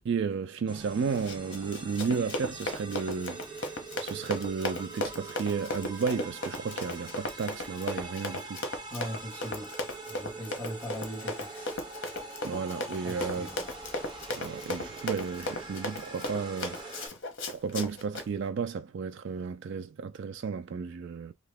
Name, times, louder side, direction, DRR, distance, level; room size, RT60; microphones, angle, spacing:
voice 1, 0.0-3.4 4.0-8.6 12.4-13.5 14.3-16.8 17.5-21.3, right 5 dB, 55° right, 0.3 m, -33 dB
sound 1, 0.7-17.1, right 2 dB, 20° right, 1.0 m, -44 dB
Run, 1.1-18.3, left 1 dB, 55° left, 0.8 m, -36 dB
voice 2, 8.9-9.7 10.1-11.8 13.0-13.7, equal, 5° left, 1.4 m, -40 dB
2.8 x 2.4 x 3.4 m
head